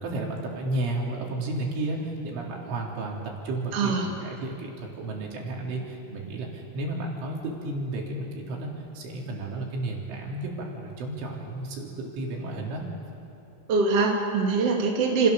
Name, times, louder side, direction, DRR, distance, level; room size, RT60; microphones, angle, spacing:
voice 1, 0.0-12.8, right 2 dB, 70° right, -2 dB, 5.9 m, -32 dB
voice 2, 3.7-4.0 13.7-15.3, right 4 dB, 35° right, -1 dB, 3.1 m, -23 dB
29.5 x 28.5 x 7.0 m, 2.8 s
omnidirectional pair, 5.8 m